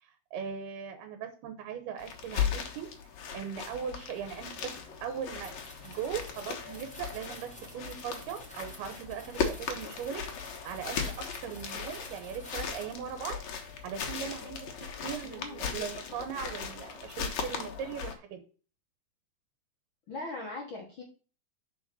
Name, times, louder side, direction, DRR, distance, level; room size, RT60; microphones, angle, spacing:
voice 1, 0.0-2.9 3.3-4.7 5.0-13.4 13.8-18.4, right 8 dB, 80° right, 8 dB, 3.0 m, -39 dB
sound 1, 2.0-18.2, left 7 dB, 60° left, 2.0 m, -37 dB
sound 2, 5.4-12.9, equal, 10° left, 0.3 m, -51 dB
voice 2, 15.2-15.8 20.1-21.0, left 2 dB, 80° left, 0 dB, 1.1 m, -40 dB
6.0 x 5.1 x 6.8 m, 0.38 s
omnidirectional pair, 4.5 m